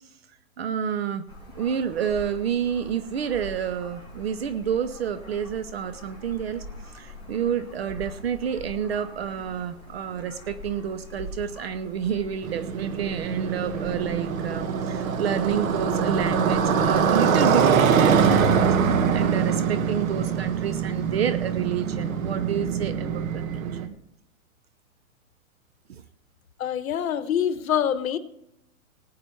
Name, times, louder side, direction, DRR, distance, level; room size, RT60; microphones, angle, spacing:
voice 1, 0.6-1.2 1.5-6.6 6.9-18.7 19.1-23.9 25.9-26.0, right 8 dB, 45° right, 12 dB, 0.7 m, -29 dB
sound 1, 1.3-17.2, left 1 dB, 10° right, 5.1 m, -43 dB
Motorcycle, 12.4-23.9, right 6 dB, 70° right, 1.4 m, -23 dB
voice 2, 26.6-28.2, left 9 dB, 75° left, 13 dB, 1.2 m, -25 dB
18.0 x 8.6 x 4.5 m, 0.81 s
hypercardioid pair, 165°, 42 cm